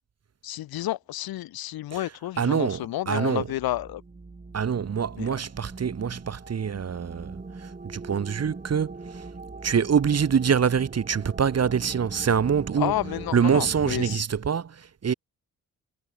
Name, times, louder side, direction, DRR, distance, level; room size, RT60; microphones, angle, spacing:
voice 1, 0.4-4.0 5.2-5.3 12.8-14.2, left 14 dB, 65° left, 0.6 m, -30 dB
voice 2, 2.4-3.5 4.5-9.3 9.6-12.9 13.3-15.1, right 7 dB, 40° right, 1.0 m, -25 dB
sound 1, 3.3-14.2, right 3 dB, 20° right, 1.4 m, -41 dB
supercardioid pair, 40°, 39 cm